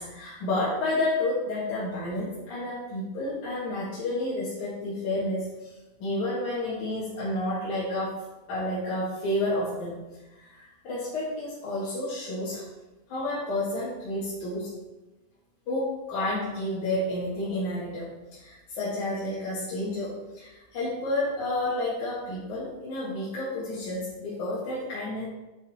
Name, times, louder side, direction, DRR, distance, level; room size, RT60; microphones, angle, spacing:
voice 1, 0.0-5.7 6.0-8.1 8.5-10.0 10.3-12.6 13.1-14.7 15.7-25.3, left 1 dB, 60° left, -9 dB, 2.8 m, -30 dB
9.0 x 5.2 x 4.2 m, 1.1 s
omnidirectional pair, 4.3 m